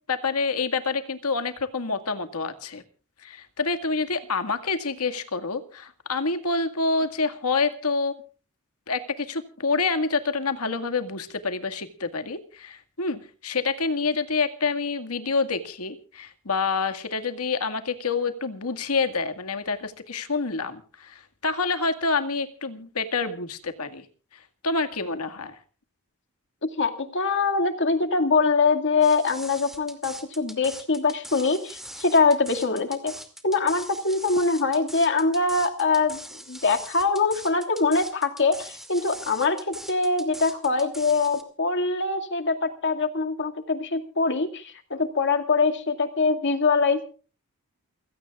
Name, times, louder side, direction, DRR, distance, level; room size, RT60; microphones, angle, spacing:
voice 1, 0.1-2.8 3.2-8.2 8.9-24.0 24.6-25.6, left 4 dB, 85° left, 9 dB, 2.0 m, -27 dB
voice 2, 26.6-33.1 33.4-47.0, left 4 dB, 55° left, 6 dB, 2.2 m, -23 dB
sound 1, 29.0-41.4, equal, ahead, 2.4 m, -42 dB
29.0 x 16.5 x 2.4 m, 0.38 s
head